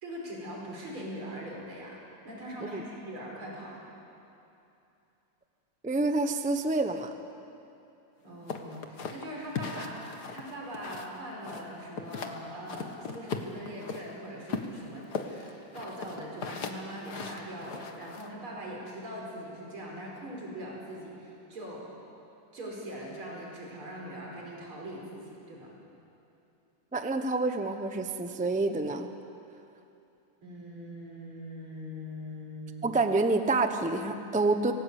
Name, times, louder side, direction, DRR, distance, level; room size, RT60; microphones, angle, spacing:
voice 1, 0.0-3.9 8.2-21.9 22.5-25.8 30.4-32.8, equal, 80° right, -2 dB, 5.6 m, -41 dB
voice 2, 5.8-7.1 26.9-29.1 32.8-34.7, right 3 dB, 10° right, 7 dB, 0.4 m, -27 dB
sound 1, 8.5-11.2 11.4-12.4 12.7-14.0 14.5-18.3, left 5 dB, 50° left, 1.8 m, -38 dB
26.5 x 18.0 x 8.4 m, 2.8 s
omnidirectional pair, 2.3 m